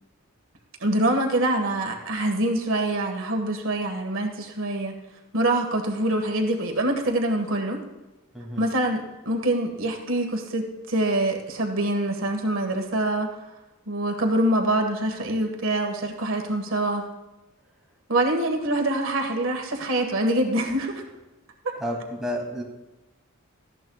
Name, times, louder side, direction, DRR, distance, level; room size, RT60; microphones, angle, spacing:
voice 1, 0.8-4.9 5.3-7.8 8.6-13.3 13.9-17.1 18.1-21.0, right 1 dB, 70° right, 3 dB, 1.6 m, -25 dB
voice 2, 21.8-22.6, equal, ahead, -4 dB, 2.6 m, -30 dB
18.5 x 14.0 x 2.4 m, 1.1 s
head